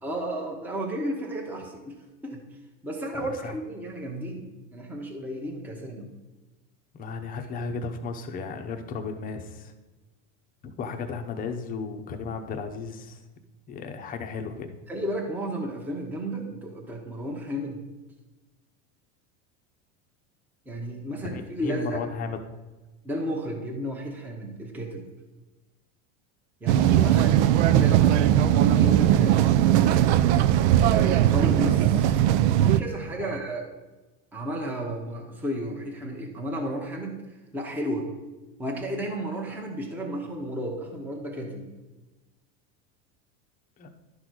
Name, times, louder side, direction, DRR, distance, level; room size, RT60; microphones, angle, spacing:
voice 1, 0.0-1.9 2.2-2.4 2.8-6.1 14.9-17.8 20.7-22.0 23.0-25.1 26.6-28.2 28.6-29.7 30.9-32.2 32.6-33.7 34.3-37.2 37.5-38.1 38.6-41.7, right 1 dB, 5° right, 0 dB, 0.9 m, -33 dB
voice 2, 3.1-3.5 6.9-9.7 10.6-13.2 13.7-14.7 21.1-22.4 33.2-33.4 43.8-43.9, left 4 dB, 25° left, 6 dB, 0.7 m, -34 dB
sound 1, 26.7-32.8, right 11 dB, 70° right, 0.5 m, -19 dB
11.0 x 4.0 x 6.1 m, 1.1 s
supercardioid pair, 155°, 35 cm